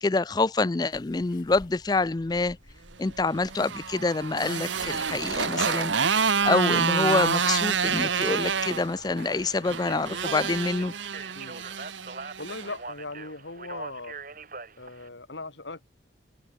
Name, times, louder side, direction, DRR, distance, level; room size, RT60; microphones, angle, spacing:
voice 1, 0.0-2.6 3.0-5.9 6.4-10.9, left 3 dB, 20° left, 0.4 m, -26 dB
sound 1, 0.9-10.9, left 3 dB, 45° left, 6.4 m, -50 dB
Motorcycle, 3.3-12.7, right 6 dB, 85° right, 1.4 m, -28 dB
Speech, 9.8-15.1, right 4 dB, 45° right, 3.8 m, -41 dB
voice 2, 12.4-14.2 14.8-15.8, left 2 dB, 75° left, 2.7 m, -39 dB
open air
head